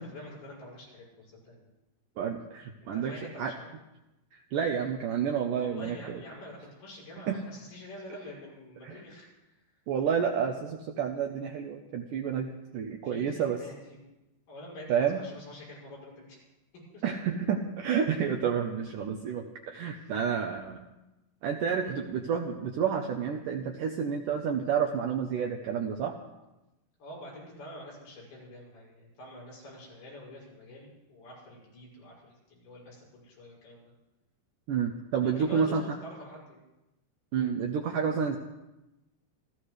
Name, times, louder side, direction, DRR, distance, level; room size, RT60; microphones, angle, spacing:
voice 1, 0.0-1.6 2.9-3.7 5.5-9.6 13.0-14.0 14.5-16.4 16.9-17.0 27.0-33.9 35.2-36.6, left 1 dB, 70° left, -5 dB, 8.5 m, -46 dB
voice 2, 2.2-3.1 3.4-3.5 4.3-6.2 7.3-7.4 8.8-9.0 9.9-13.6 14.9-15.2 17.0-20.8 21.4-26.1 34.7-36.0 37.3-38.4, right 7 dB, 75° right, 2 dB, 2.0 m, -30 dB
28.0 x 14.5 x 3.3 m, 0.98 s
omnidirectional pair, 4.7 m